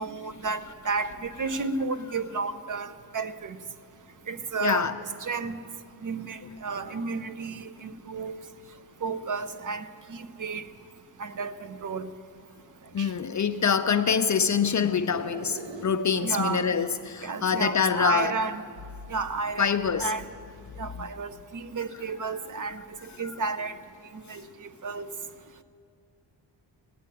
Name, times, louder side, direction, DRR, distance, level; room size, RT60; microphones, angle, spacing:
voice 1, 0.0-3.6 4.3-4.9 5.2-5.6 6.0-8.4 9.0-10.7 11.2-12.1 13.0-13.1 16.2-16.7 17.2-18.6 19.1-19.7 20.0-20.3 20.8-22.8 23.2-23.7 24.3-25.1, right 4 dB, 45° right, 11 dB, 0.7 m, -32 dB
voice 2, 4.6-4.9 12.9-18.3 19.6-20.1 21.0-21.1, left 6 dB, 40° left, 9 dB, 0.5 m, -25 dB
sound 1, 14.9-18.4 18.6-20.2, right 2 dB, 80° right, 1.4 m, -45 dB
16.5 x 8.6 x 9.9 m, 2.3 s
wide cardioid pair, 140°, 45 cm